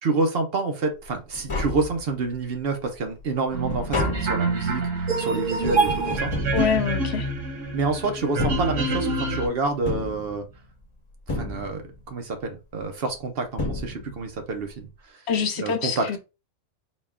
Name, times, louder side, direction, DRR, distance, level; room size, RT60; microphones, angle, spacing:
voice 1, 0.0-6.3 7.7-10.5 11.3-11.8 12.1-15.2 15.6-16.2, right 3 dB, 55° right, 0.9 m, -28 dB
Tap, 1.1-1.2 1.3-2.4 2.9-7.6 8.2-9.3 9.9-10.8 11.3-12.1 13.1-13.2 13.6-14.4 14.7-14.8, left 2 dB, 30° left, 0.8 m, -32 dB
sound 1, 3.5-9.5, right 3 dB, 90° right, 1.3 m, -26 dB
voice 2, 6.5-7.3 15.3-16.2, left 6 dB, 65° left, 0.8 m, -25 dB
4.1 x 2.2 x 3.5 m
omnidirectional pair, 1.3 m